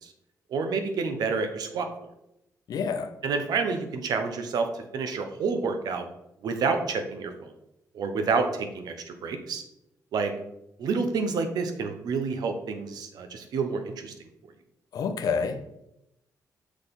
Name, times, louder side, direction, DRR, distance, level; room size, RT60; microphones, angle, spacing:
voice 1, 0.5-2.1 3.2-6.1 6.4-7.5 7.9-9.6 10.1-10.3 10.8-14.1, right 4 dB, 75° right, 7 dB, 1.0 m, -29 dB
voice 2, 2.7-3.1 14.9-15.6, left 5 dB, 65° left, 9 dB, 0.7 m, -28 dB
6.4 x 6.0 x 3.8 m, 0.83 s
wide cardioid pair, 160°, 7 cm